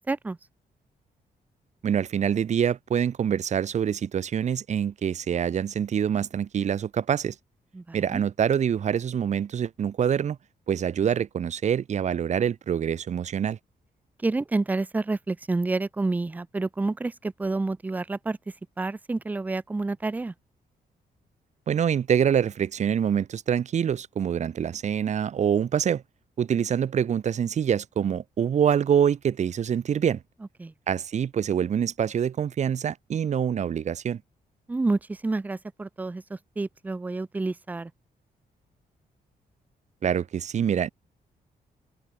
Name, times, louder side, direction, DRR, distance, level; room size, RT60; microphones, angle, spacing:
voice 1, 0.1-0.4 7.7-8.2 14.2-18.4 18.8-20.3 30.6-30.7 34.7-37.9, right 3 dB, 10° right, 0.3 m, -29 dB
voice 2, 1.8-7.4 7.9-10.4 10.7-13.6 21.7-26.0 26.4-30.2 30.9-34.2 40.0-40.9, right 8 dB, 45° right, 0.7 m, -25 dB
cardioid pair, 135°, 16 cm